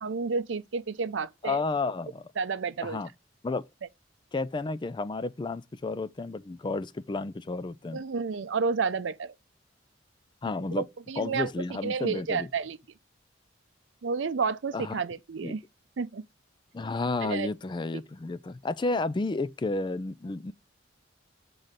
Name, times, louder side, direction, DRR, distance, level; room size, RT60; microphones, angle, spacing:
voice 1, 0.0-1.6 2.4-3.0 7.9-9.3 10.8-11.5 11.8-12.8 14.0-15.6 16.0-16.2 17.2-17.5, right 5 dB, 75° right, 0.5 m, -30 dB
voice 2, 1.4-2.3 2.8-3.1 3.4-3.6 4.3-8.0 10.4-10.9 11.2-12.5 14.7-15.0 15.4-15.6 16.7-20.5, left 3 dB, 25° left, 0.4 m, -31 dB
7.4 x 3.9 x 6.5 m
head